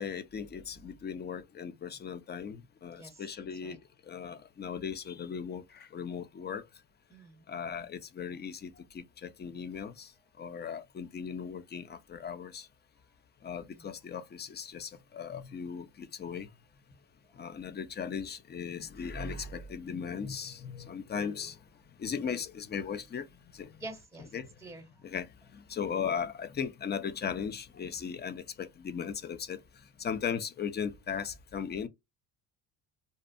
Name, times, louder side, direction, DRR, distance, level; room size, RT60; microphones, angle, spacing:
voice 1, 0.0-3.8 4.1-5.6 5.9-6.6 7.5-10.1 10.4-12.7 13.4-16.5 17.4-21.5 22.0-23.2 23.6-23.7 24.2-24.5 25.0-25.3 25.7-29.6 30.0-31.9, left 7 dB, 25° left, 0.3 m, -37 dB
voice 2, 3.0-3.8 7.1-7.4 9.7-9.8 13.7-13.9 23.8-24.9, right 2 dB, 5° right, 0.8 m, -48 dB
2.6 x 2.0 x 2.4 m
supercardioid pair, 75°, 47 cm